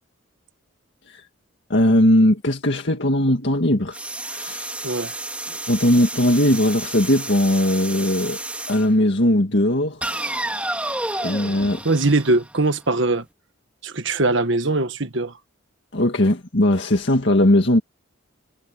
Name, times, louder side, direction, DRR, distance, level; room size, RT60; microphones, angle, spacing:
voice 1, 1.7-4.0 4.2-4.8 5.7-8.4 8.7-10.0 11.2-11.8 15.9-17.8, left 1 dB, 55° left, 2.0 m, -19 dB
sound 1, 3.9-8.9 10.0-12.9, right 1 dB, 5° right, 3.0 m, -31 dB
voice 2, 11.8-13.2 13.8-15.3, right 2 dB, 60° right, 1.5 m, -21 dB
head